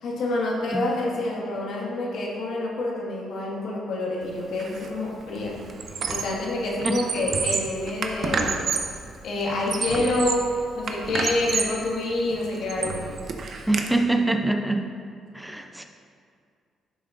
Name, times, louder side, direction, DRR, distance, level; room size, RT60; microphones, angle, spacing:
voice 1, 0.0-5.6 6.1-8.6 9.2-13.0, left 2 dB, 70° left, -3 dB, 1.8 m, -27 dB
Squeak, 4.6-4.9 5.2-6.4 6.7-9.0 9.5-10.5 10.9-11.8 12.3-13.9, right 5 dB, 55° right, 0.7 m, -29 dB
voice 2, 13.7-14.9 15.3-15.8, right 2 dB, 5° right, 5 dB, 0.5 m, -24 dB
11.5 x 6.9 x 2.5 m, 2.2 s
cardioid pair, 90°, 0 cm